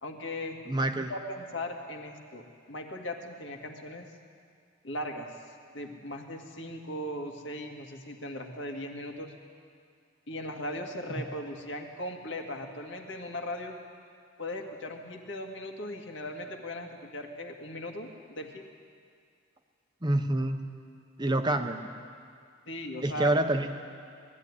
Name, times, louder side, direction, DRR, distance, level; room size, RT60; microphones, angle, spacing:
voice 1, 0.0-0.6 1.1-4.1 4.8-5.3 5.7-9.3 10.3-13.8 14.4-18.6 22.7-23.4, left 1 dB, 65° left, 2 dB, 2.0 m, -38 dB
voice 2, 0.7-1.1 20.0-20.6 21.2-22.0 23.0-23.7, right 1 dB, 20° right, 6 dB, 1.0 m, -27 dB
19.5 x 13.5 x 9.7 m, 2.2 s
head